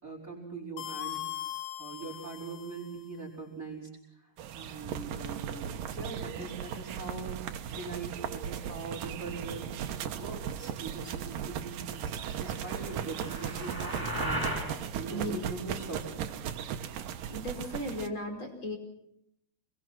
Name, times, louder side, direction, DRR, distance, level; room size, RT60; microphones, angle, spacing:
voice 1, 0.0-7.4 7.7-9.7 10.1-16.2, right 3 dB, 20° right, 1 dB, 5.5 m, -42 dB
sound 1, 0.8-3.1, left 12 dB, 65° left, 2.3 m, -40 dB
sound 2, 4.4-18.1, right 9 dB, 65° right, 2.6 m, -37 dB
sound 3, 12.5-14.7, right 1 dB, 5° left, 6.5 m, -36 dB
voice 2, 17.3-18.8, equal, 30° left, 4 dB, 5.3 m, -36 dB
27.5 x 22.0 x 6.1 m, 0.76 s
omnidirectional pair, 4.5 m